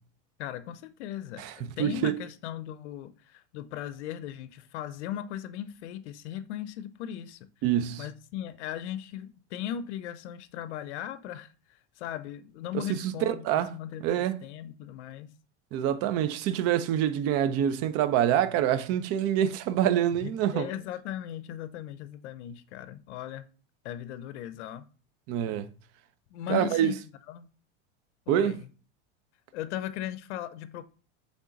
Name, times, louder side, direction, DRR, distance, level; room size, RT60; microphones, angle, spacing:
voice 1, 0.4-7.4 8.0-14.1 14.4-15.3 20.2-23.5 23.8-24.9 26.3-27.0 27.3-27.5 28.3-28.7 29.5-30.8, left 11 dB, 80° left, 0.6 m, -38 dB
voice 2, 1.8-2.2 7.6-8.0 12.7-13.7 14.0-14.4 15.7-20.7 25.3-25.7 26.5-26.9 28.3-28.6, right 10 dB, 45° right, 0.5 m, -26 dB
3.7 x 3.5 x 3.8 m
supercardioid pair, 120°, 34 cm